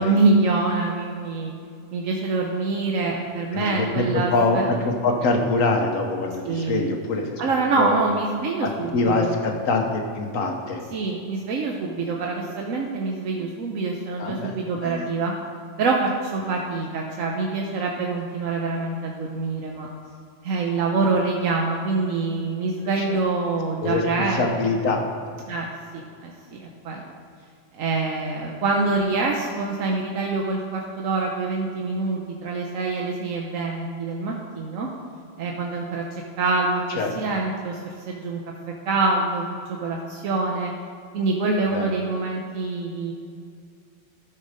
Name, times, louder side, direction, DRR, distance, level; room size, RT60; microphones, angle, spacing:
voice 1, 0.0-1.5 1.9-4.7 6.5-6.9 7.4-8.9 9.2-9.3 10.9-15.3 15.8-19.9 20.4-24.4 25.5-25.7 25.9-27.0 27.7-34.9 35.4-36.0 36.4-38.4 38.9-39.4 39.7-40.7 41.1-43.1, right 3 dB, 85° right, 0 dB, 1.2 m, -25 dB
voice 2, 3.5-7.4 7.8-7.9 8.6-10.8 14.2-15.1 23.0-23.2 23.8-24.0 24.3-25.0 36.9-37.1 41.7-41.9, left 3 dB, 85° left, 2 dB, 1.5 m, -24 dB
13.0 x 4.6 x 5.0 m, 2.3 s
omnidirectional pair, 1.3 m